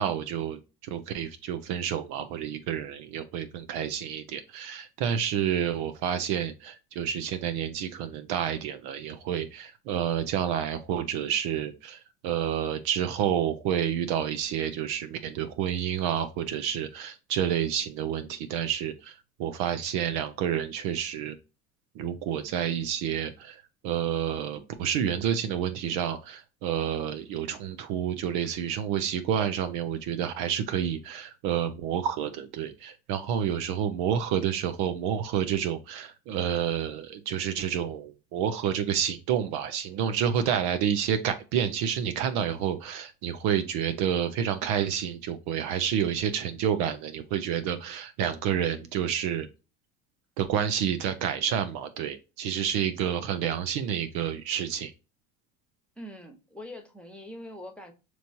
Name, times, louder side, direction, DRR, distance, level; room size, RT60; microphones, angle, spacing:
voice 1, 0.0-21.4 21.9-49.5 50.4-54.9, right 9 dB, 60° right, 0.7 m, -29 dB
voice 2, 56.0-57.9, left 1 dB, 5° left, 1.2 m, -43 dB
5.2 x 3.1 x 2.6 m
hypercardioid pair, 70°, 43 cm